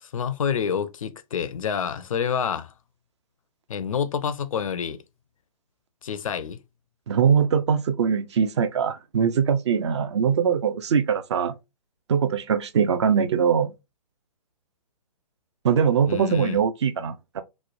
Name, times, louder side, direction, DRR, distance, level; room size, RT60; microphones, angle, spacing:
voice 1, 0.0-2.7 3.7-5.0 6.0-6.6 16.1-16.6, left 7 dB, 55° left, 0.4 m, -28 dB
voice 2, 7.1-11.5 12.1-13.7 15.6-17.4, right 7 dB, 45° right, 0.4 m, -22 dB
3.0 x 2.0 x 2.5 m
figure-of-eight pair, 130°, 21 cm